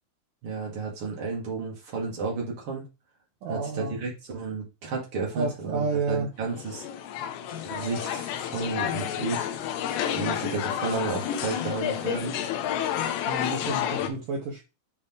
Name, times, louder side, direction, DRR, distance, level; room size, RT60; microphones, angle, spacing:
voice 1, 0.4-2.9 3.5-6.8 7.7-9.5 10.1-12.4 14.0-14.1, right 4 dB, 55° right, 1.4 m, -32 dB
voice 2, 3.4-4.0 5.3-6.3 13.3-14.6, right 3 dB, 70° right, 2.0 m, -30 dB
sound 1, 6.5-14.1, left 10 dB, 80° left, 2.8 m, -30 dB
8.1 x 3.7 x 3.6 m
omnidirectional pair, 5.5 m